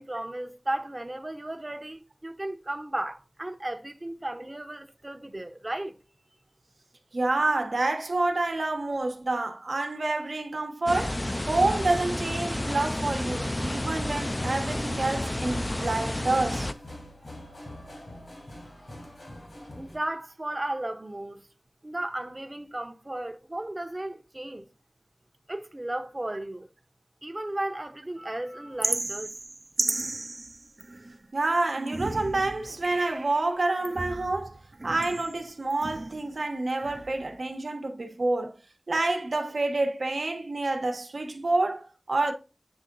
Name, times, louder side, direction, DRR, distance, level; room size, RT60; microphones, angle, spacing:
voice 1, 0.0-5.9 19.8-21.5 21.8-24.6 25.5-26.7 27.2-29.3, right 1 dB, 40° right, 0.7 m, -35 dB
voice 2, 7.1-16.7 31.3-38.6 38.9-42.3, right 2 dB, 90° right, 1.0 m, -28 dB
sound 1, 10.9-16.7, left 1 dB, 30° left, 0.3 m, -31 dB
sound 2, 14.2-20.0, left 1 dB, 80° left, 2.9 m, -44 dB
sound 3, 28.8-31.2 31.8-33.4 33.8-36.3 36.7-37.4, right 2 dB, 60° right, 0.4 m, -34 dB
8.9 x 3.6 x 3.8 m
wide cardioid pair, 50°, 0 cm